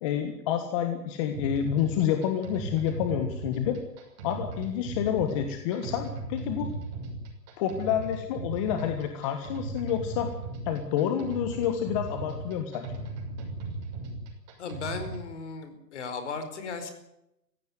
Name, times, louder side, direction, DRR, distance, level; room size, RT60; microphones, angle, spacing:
voice 1, 0.0-3.8 4.2-6.7 7.6-10.3 10.6-13.0, left 9 dB, 20° left, 7 dB, 1.5 m, -29 dB
sound 1, 1.3-15.3, right 2 dB, 25° right, 6.2 m, -37 dB
voice 2, 14.6-16.9, left 4 dB, 45° left, 9 dB, 4.9 m, -36 dB
19.5 x 16.0 x 9.3 m, 0.84 s
hypercardioid pair, 160°, 49 cm